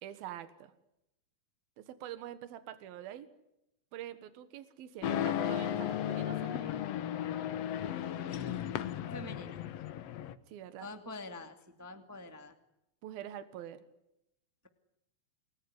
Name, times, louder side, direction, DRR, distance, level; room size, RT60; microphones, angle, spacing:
voice 1, 0.0-0.7 1.8-3.3 3.9-6.8 10.5-10.9 13.0-13.8, right 11 dB, 80° right, 12 dB, 3.3 m, -45 dB
sound 1, 5.0-10.4, left 10 dB, 65° left, 1.7 m, -35 dB
voice 2, 8.1-8.7 9.1-9.6 10.8-12.5, left 2 dB, 5° right, 7 dB, 1.5 m, -46 dB
29.0 x 20.0 x 9.7 m, 0.86 s
omnidirectional pair, 4.2 m